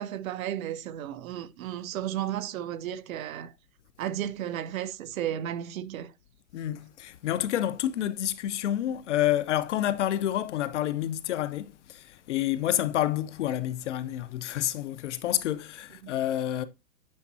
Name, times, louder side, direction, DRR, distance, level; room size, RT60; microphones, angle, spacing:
voice 1, 0.0-3.5 4.0-6.1 16.0-16.2, right 11 dB, 55° right, 0.6 m, -33 dB
voice 2, 6.5-16.6, left 12 dB, 50° left, 0.5 m, -29 dB
8.7 x 4.2 x 2.7 m
hypercardioid pair, 155°, 49 cm